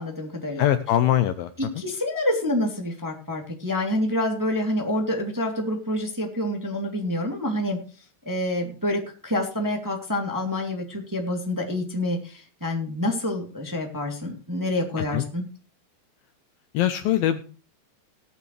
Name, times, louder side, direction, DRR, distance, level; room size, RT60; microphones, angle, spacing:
voice 1, 0.0-0.7 1.6-7.8 8.3-15.4, left 1 dB, 5° right, 1 dB, 1.9 m, -27 dB
voice 2, 0.6-1.5 15.0-15.3 16.7-17.4, left 12 dB, 75° left, 10 dB, 2.3 m, -22 dB
19.0 x 9.6 x 3.3 m, 0.37 s
omnidirectional pair, 4.7 m